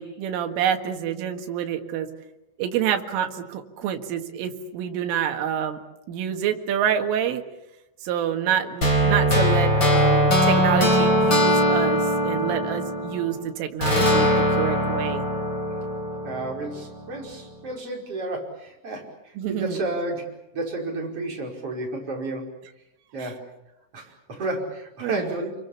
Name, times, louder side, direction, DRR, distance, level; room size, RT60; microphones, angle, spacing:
voice 1, 0.0-2.1 2.6-5.8 6.1-7.4 8.0-15.3 19.4-19.8 23.2-23.3 25.0-25.2, right 9 dB, 85° right, 4 dB, 4.3 m, -27 dB
sound 1, 8.8-13.3 13.8-16.9, equal, 25° left, 4.6 m, -21 dB
voice 2, 16.2-22.6 23.1-23.5 23.9-25.6, right 2 dB, 30° right, 0 dB, 5.7 m, -32 dB
29.5 x 23.0 x 7.2 m, 0.93 s
omnidirectional pair, 5.6 m